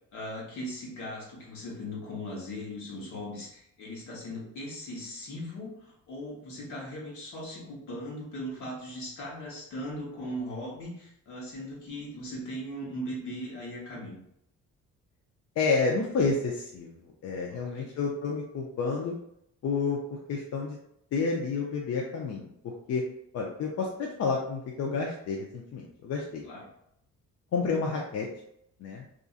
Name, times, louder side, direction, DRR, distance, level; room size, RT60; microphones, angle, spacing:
voice 1, 0.1-14.2 17.5-17.9 26.4-26.7, equal, 75° left, -3 dB, 1.1 m, -39 dB
voice 2, 15.6-16.9 17.2-19.1 19.6-20.0 20.3-20.8 21.1-23.0 23.3-26.4 27.5-28.3 28.8-29.1, left 4 dB, 55° left, -1 dB, 0.5 m, -30 dB
2.7 x 2.4 x 2.4 m, 0.75 s
cardioid pair, 90°, 30 cm